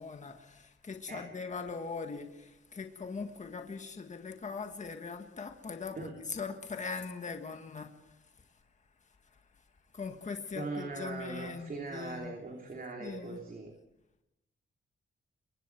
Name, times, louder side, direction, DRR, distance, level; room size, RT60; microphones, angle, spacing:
voice 1, 0.0-7.9 9.9-12.4 13.0-13.4, left 5 dB, 35° left, 5 dB, 1.8 m, -41 dB
voice 2, 10.5-13.7, right 3 dB, 45° right, 1 dB, 3.2 m, -40 dB
28.5 x 24.0 x 4.7 m, 0.90 s
wide cardioid pair, 125°, 20 cm